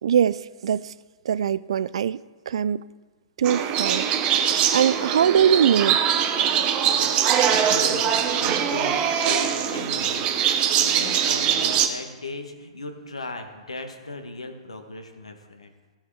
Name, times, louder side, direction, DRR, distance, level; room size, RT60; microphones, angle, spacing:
voice 1, 0.0-0.9 1.3-2.2 2.5-2.8 3.4-6.0, right 8 dB, 65° right, 18 dB, 0.4 m, -22 dB
sound 1, 3.4-11.9, right 8 dB, 30° right, 1.1 m, -22 dB
voice 2, 6.9-10.5 10.8-15.7, left 2 dB, 85° left, 5 dB, 1.6 m, -37 dB
16.0 x 8.0 x 4.9 m, 1.3 s
figure-of-eight pair, 115°, 3 cm